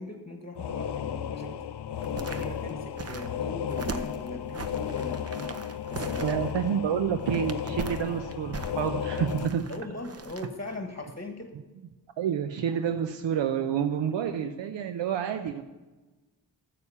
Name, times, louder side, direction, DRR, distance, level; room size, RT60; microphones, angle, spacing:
voice 1, 0.0-1.6 2.1-6.4 6.8-7.0 9.1-9.3 9.7-11.6, left 1 dB, 25° left, 5 dB, 1.3 m, -40 dB
sound 1, 0.6-9.5, left 9 dB, 65° left, 0.6 m, -34 dB
sound 2, 1.9-10.8 11.1-11.2, right 4 dB, 35° right, 0.7 m, -40 dB
voice 2, 6.2-9.6 12.2-15.6, right 8 dB, 75° right, 8 dB, 0.6 m, -28 dB
9.5 x 7.1 x 5.6 m, 1.2 s
cardioid pair, 60°, 44 cm